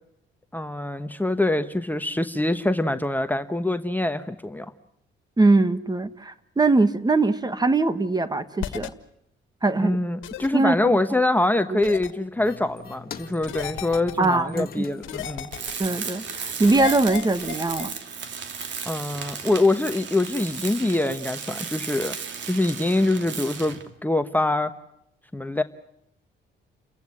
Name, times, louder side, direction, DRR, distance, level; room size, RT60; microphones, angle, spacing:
voice 1, 0.5-4.7 9.8-15.5 18.8-22.2 22.4-24.7 25.3-25.6, left 2 dB, 10° left, 8 dB, 1.1 m, -24 dB
voice 2, 5.4-8.9 9.6-10.0 10.5-11.0 11.7-11.8 14.2-14.8 15.8-17.9, right 2 dB, 20° right, 12 dB, 1.5 m, -22 dB
sound 1, 8.6-8.9 10.2-10.5 11.8-12.1 13.4-14.3 15.0-15.9 16.6-17.9, left 11 dB, 80° left, 1.7 m, -34 dB
sound 2, 12.4-17.3, left 7 dB, 50° left, 1.7 m, -44 dB
Tools, 15.5-23.9, right 6 dB, 65° right, 2.8 m, -35 dB
30.0 x 15.0 x 9.7 m, 0.79 s
cardioid pair, 90°, 20 cm